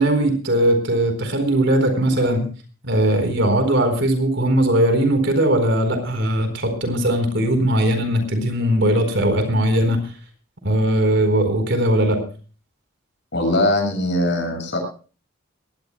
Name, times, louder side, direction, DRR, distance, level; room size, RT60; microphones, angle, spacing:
voice 1, 0.0-2.5 2.8-10.0 10.6-12.2, right 1 dB, 60° right, 8 dB, 4.3 m, -19 dB
voice 2, 13.3-14.8, left 1 dB, 60° left, 4 dB, 7.7 m, -21 dB
22.5 x 18.5 x 2.2 m, 0.37 s
head